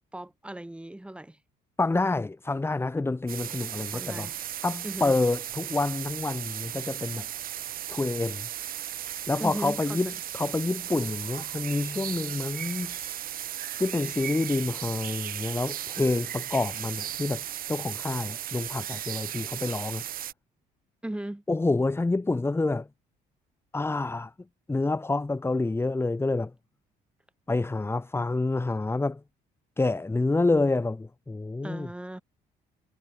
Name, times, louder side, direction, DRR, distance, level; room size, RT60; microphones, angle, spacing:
voice 1, 0.1-1.4 3.8-4.4 4.8-5.2 9.4-10.1 21.0-21.4 31.6-32.2, right 1 dB, 5° right, 6.9 m, -37 dB
voice 2, 1.8-4.3 4.6-7.3 7.9-8.5 9.3-13.2 13.8-17.4 17.7-20.0 21.5-22.9 23.7-24.3 24.7-26.5 27.5-29.2 29.8-31.9, left 3 dB, 15° left, 2.4 m, -28 dB
sound 1, 3.3-20.3, right 11 dB, 60° right, 2.0 m, -36 dB
cardioid pair, 110°, 17 cm